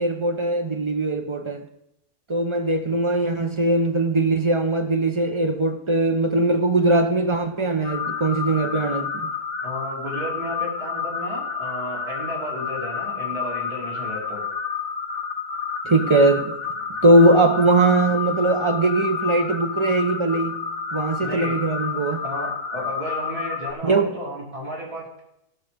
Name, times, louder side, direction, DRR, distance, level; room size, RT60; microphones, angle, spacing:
voice 1, 0.0-1.6 2.3-9.3 15.8-16.6 17.0-20.6 20.9-22.2 23.8-24.1, right 2 dB, 25° right, 0.7 m, -20 dB
sound 1, 7.8-23.7, left 6 dB, 40° left, 1.7 m, -30 dB
voice 2, 9.6-14.4 21.2-21.6 22.2-25.2, equal, 90° right, 4.0 m, -33 dB
16.0 x 6.4 x 5.2 m
omnidirectional pair, 1.6 m